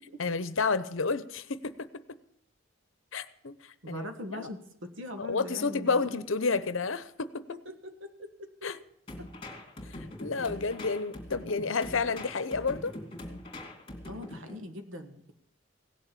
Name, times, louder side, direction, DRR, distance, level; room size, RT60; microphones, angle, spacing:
voice 1, 0.2-1.9 3.1-4.5 5.2-7.4 8.6-8.8 9.8-12.9, left 4 dB, 70° left, 0.8 m, -31 dB
voice 2, 3.8-6.2 7.5-8.7 14.1-15.3, left 1 dB, 65° right, 1.5 m, -42 dB
sound 1, 9.1-14.6, left 1 dB, 25° left, 2.5 m, -43 dB
17.0 x 7.1 x 8.5 m
head